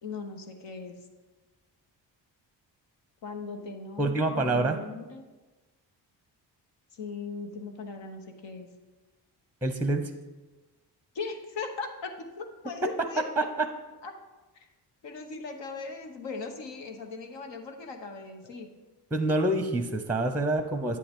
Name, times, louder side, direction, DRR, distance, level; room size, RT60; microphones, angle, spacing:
voice 1, 0.0-0.9 3.2-5.2 6.9-8.7 11.1-13.5 14.0-14.1 14.5-14.7 15.0-18.7, left 4 dB, 80° left, 4 dB, 1.1 m, -39 dB
voice 2, 4.0-4.8 9.6-10.1 12.8-13.7 19.1-21.0, right 2 dB, 5° right, 7 dB, 0.6 m, -27 dB
9.7 x 7.6 x 3.6 m, 1.2 s
cardioid pair, 65°, 43 cm